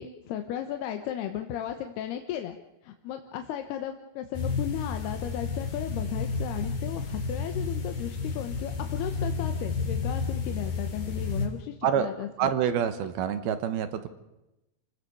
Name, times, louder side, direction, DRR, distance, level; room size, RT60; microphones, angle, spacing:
voice 1, 0.0-2.6 2.8-12.5, left 10 dB, 80° left, 6 dB, 3.1 m, -35 dB
sound 1, 4.3-11.5, left 4 dB, 60° left, 5.0 m, -31 dB
voice 2, 12.4-14.1, right 9 dB, 75° right, 10 dB, 3.0 m, -27 dB
28.5 x 18.0 x 6.9 m, 0.95 s
omnidirectional pair, 4.7 m